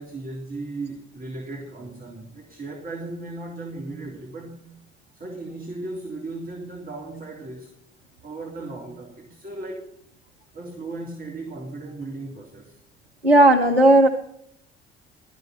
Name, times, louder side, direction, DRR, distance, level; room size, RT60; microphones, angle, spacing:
voice 1, 0.0-4.7 5.1-7.8 8.2-10.0 10.5-12.8, right 2 dB, 30° right, 0 dB, 3.2 m, -36 dB
voice 2, 13.2-14.1, right 1 dB, 90° right, 6 dB, 0.7 m, -14 dB
17.0 x 13.5 x 4.3 m, 0.73 s
figure-of-eight pair, 50°, 30 cm